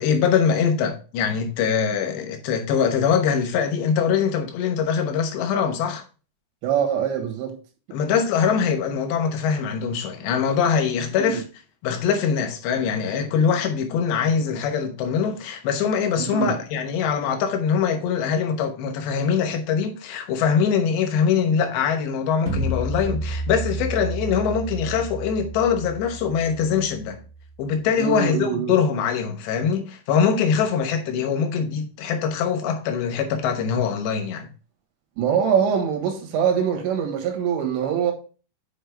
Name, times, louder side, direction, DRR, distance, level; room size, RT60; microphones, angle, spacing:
voice 1, 0.0-6.0 7.9-11.4 11.8-27.2 27.6-34.5, left 7 dB, 80° left, 3.2 m, -23 dB
voice 2, 6.6-7.6 11.3-11.4 16.2-16.6 28.0-28.7 35.2-38.1, right 8 dB, 85° right, 3.7 m, -23 dB
sound 1, 22.5-27.5, right 1 dB, 55° right, 0.8 m, -31 dB
8.2 x 5.6 x 3.3 m
omnidirectional pair, 5.1 m